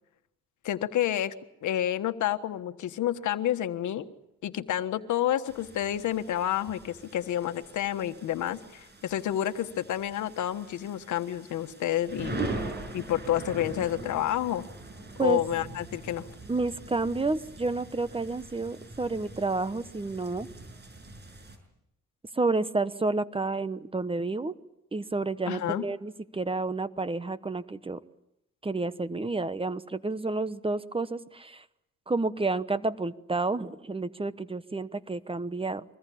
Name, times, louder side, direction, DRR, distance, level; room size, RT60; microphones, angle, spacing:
voice 1, 0.6-1.3 1.6-4.1 4.4-12.5 12.9-14.6 15.2-16.3 25.5-25.8, left 11 dB, 75° left, 10 dB, 1.4 m, -29 dB
sound 1, 5.5-21.6, right 2 dB, 35° right, 6.3 m, -42 dB
voice 2, 16.5-20.5 22.3-24.5 24.9-28.0 28.6-31.6 32.1-35.8, right 3 dB, 20° right, 14 dB, 1.1 m, -30 dB
25.0 x 20.5 x 8.6 m, 0.84 s
cardioid pair, 90°, 30 cm